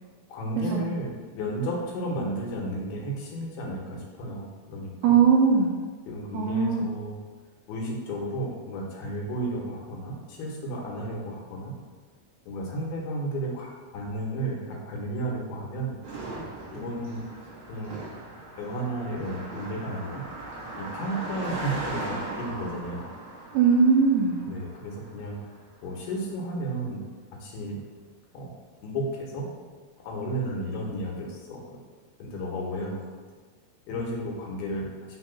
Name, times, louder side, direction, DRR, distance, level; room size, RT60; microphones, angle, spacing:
voice 1, 0.3-5.2 6.1-7.2 7.7-11.7 12.5-16.0 16.7-17.2 17.7-18.0 18.6-20.2 20.8-23.1 24.4-25.4 25.8-27.0 27.3-27.8 28.3-28.5 28.8-29.5 30.0-31.8 32.2-33.0 33.9-34.9, right 1 dB, 75° left, -2 dB, 2.8 m, -33 dB
voice 2, 5.0-5.7 6.3-6.9 23.5-24.4, right 6 dB, 85° right, -2 dB, 2.0 m, -20 dB
Car passing by, 16.0-25.6, right 2 dB, 70° right, 1.2 m, -38 dB
6.2 x 2.9 x 5.7 m, 1.4 s
omnidirectional pair, 4.7 m